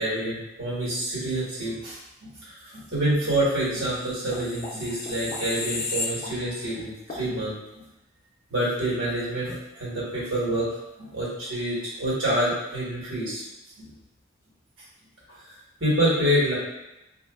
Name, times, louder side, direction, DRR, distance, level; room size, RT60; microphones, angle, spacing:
voice 1, 0.0-7.6 8.5-10.7 11.0-13.4 13.8-13.9 15.3-15.5 15.8-16.5, right 1 dB, 90° right, -7 dB, 1.3 m, -27 dB
sound 1, 3.8-6.7 7.1-7.3, left 3 dB, 35° left, 0.5 m, -34 dB
3.6 x 2.5 x 2.3 m, 0.93 s
head